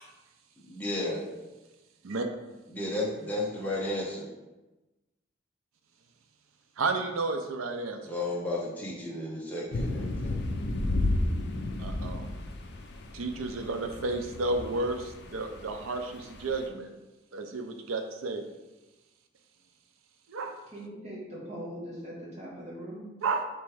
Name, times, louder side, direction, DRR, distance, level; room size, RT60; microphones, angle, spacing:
voice 1, 0.6-1.2 2.7-4.3 8.1-10.4, left 1 dB, 10° left, -5 dB, 0.7 m, -33 dB
voice 2, 6.8-8.2 11.8-12.3 13.1-16.9 17.3-18.4 20.3-20.5 23.2-23.4, right 3 dB, 90° right, 6 dB, 0.5 m, -32 dB
sound 1, 9.7-16.7, left 2 dB, 55° left, 0.4 m, -33 dB
voice 3, 20.7-23.1, equal, 30° right, -6 dB, 1.3 m, -41 dB
3.4 x 3.0 x 4.8 m, 1.1 s
head